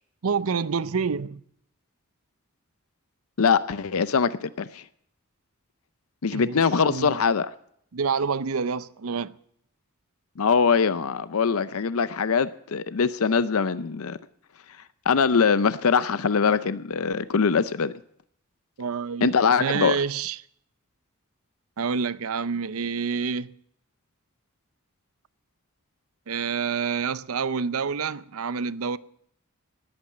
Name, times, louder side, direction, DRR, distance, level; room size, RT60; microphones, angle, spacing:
voice 1, 0.2-1.4 6.3-6.6 6.9-7.2 7.9-9.4 18.8-19.3 19.6-20.4 21.8-23.5 26.3-29.0, right 5 dB, 70° right, 0.6 m, -27 dB
voice 2, 3.4-4.8 6.2-7.5 10.4-14.2 15.1-17.9 19.2-20.0, left 5 dB, 70° left, 0.6 m, -22 dB
19.5 x 8.8 x 7.4 m
head